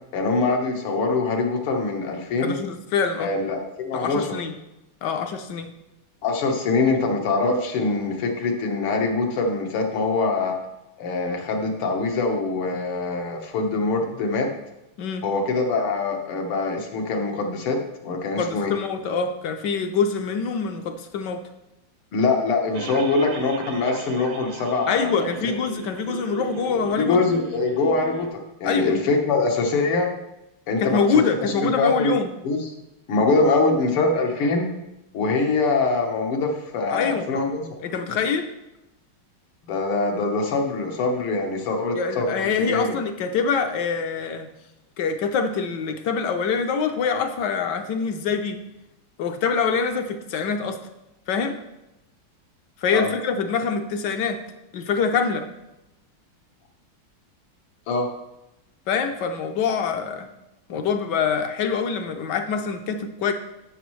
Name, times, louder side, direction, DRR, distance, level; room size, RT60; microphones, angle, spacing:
voice 1, 0.1-2.5 3.2-4.4 6.2-10.6 11.0-14.5 15.2-18.7 22.1-25.5 27.0-30.1 30.7-32.1 32.4-32.6 33.1-34.7 35.1-37.6 39.7-42.9 52.9-53.1 57.9-58.1, left 3 dB, 85° left, 2 dB, 2.1 m, -23 dB
voice 2, 2.4-3.3 3.9-4.5 5.0-5.7 15.0-15.2 18.4-21.4 24.9-27.2 28.6-28.9 30.8-32.3 36.9-37.3 37.8-38.5 41.9-44.5 45.0-48.6 49.2-50.8 51.3-51.6 52.8-54.4 54.7-55.5 58.9-60.3 60.7-63.3, left 5 dB, 70° left, 7 dB, 1.1 m, -25 dB
sound 1, 22.7-28.3, right 6 dB, 85° right, 1.6 m, -38 dB
13.0 x 6.2 x 3.1 m, 0.93 s
omnidirectional pair, 2.4 m